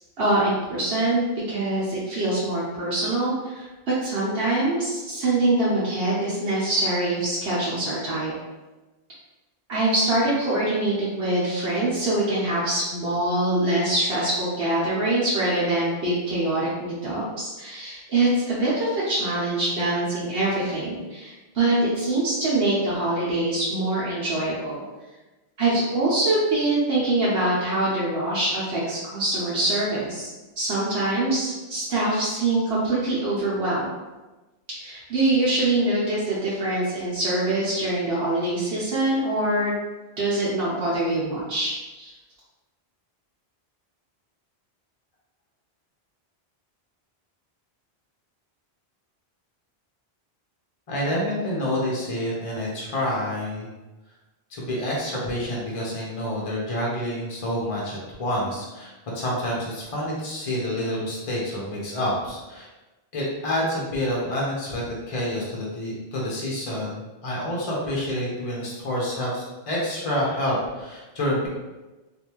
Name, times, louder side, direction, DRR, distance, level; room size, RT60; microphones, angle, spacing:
voice 1, 0.2-8.3 9.7-24.8 25.6-30.3 30.6-33.9 34.7-39.8 40.2-42.1, right 2 dB, 80° right, -9 dB, 1.2 m, -24 dB
voice 2, 50.9-53.7 54.5-62.7 63.1-71.5, equal, 35° left, -4 dB, 0.8 m, -28 dB
3.3 x 2.6 x 2.9 m, 1.1 s
omnidirectional pair, 1.1 m